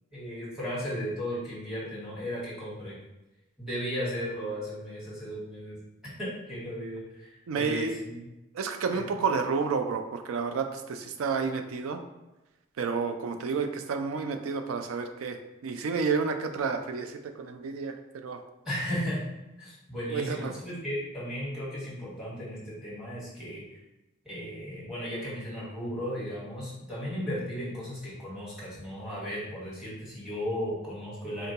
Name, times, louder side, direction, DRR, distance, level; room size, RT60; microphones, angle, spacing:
voice 1, 0.1-3.0 3.6-5.8 6.2-8.2 8.9-9.0 18.6-19.2 19.6-23.6 24.2-31.5, equal, ahead, -8 dB, 1.1 m, -35 dB
voice 2, 7.5-8.0 8.5-12.0 12.8-18.4 20.1-20.6, right 5 dB, 90° right, 6 dB, 0.4 m, -30 dB
3.8 x 2.2 x 2.7 m, 0.99 s
head